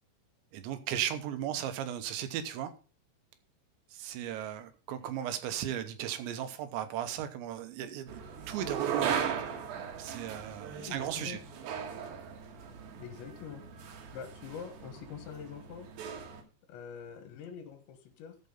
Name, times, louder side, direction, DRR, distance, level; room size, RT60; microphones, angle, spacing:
voice 1, 0.5-2.7 3.9-8.2 8.5-9.3 10.0-11.4, right 10 dB, 80° right, 3.2 m, -36 dB
sound 1, 8.1-16.4, right 7 dB, 65° right, 2.8 m, -38 dB
voice 2, 10.8-11.4 13.0-13.9 14.1-15.9 16.7-18.4, left 7 dB, 80° left, 3.6 m, -45 dB
13.5 x 5.3 x 5.3 m
omnidirectional pair, 5.3 m